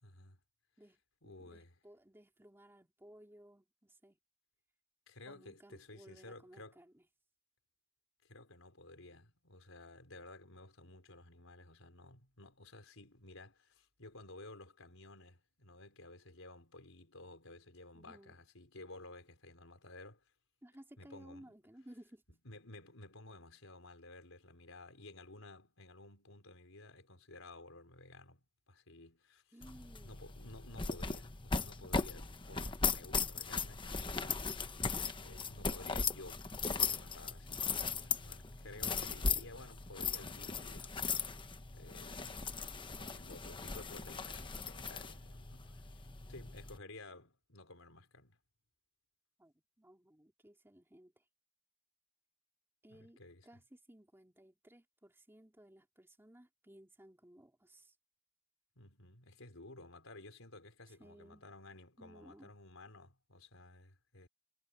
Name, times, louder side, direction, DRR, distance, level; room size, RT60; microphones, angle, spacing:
voice 1, 0.0-0.4 1.2-1.7 5.1-6.8 8.2-20.3 21.0-21.6 22.4-29.5 30.0-34.8 35.2-41.4 41.7-42.6 42.9-46.0 46.3-48.4 52.9-53.5 58.8-64.3, left 2 dB, 75° left, 4.9 m, -54 dB
voice 2, 0.8-4.2 5.3-7.0 17.9-18.3 20.6-22.2 29.5-30.1 35.1-35.5 49.4-51.2 52.8-57.9 60.9-61.4 62.0-62.5, right 1 dB, 10° right, 3.1 m, -59 dB
sound 1, 29.6-46.8, left 5 dB, 25° left, 1.0 m, -38 dB
head